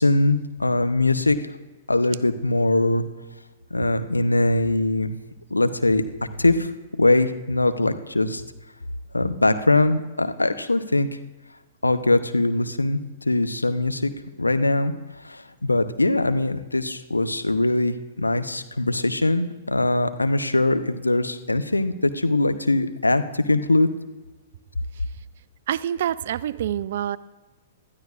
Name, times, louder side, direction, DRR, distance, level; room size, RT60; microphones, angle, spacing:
voice 1, 0.0-1.4 1.9-3.0 3.7-5.1 5.5-6.0 6.4-6.7 7.0-8.4 9.1-11.1 11.8-13.0 13.3-14.1 14.4-23.9, left 2 dB, 85° left, 10 dB, 0.8 m, -21 dB
voice 2, 25.7-27.2, right 10 dB, 55° right, 18 dB, 0.4 m, -26 dB
19.5 x 12.5 x 2.5 m, 1.2 s
figure-of-eight pair, 110°, 0 cm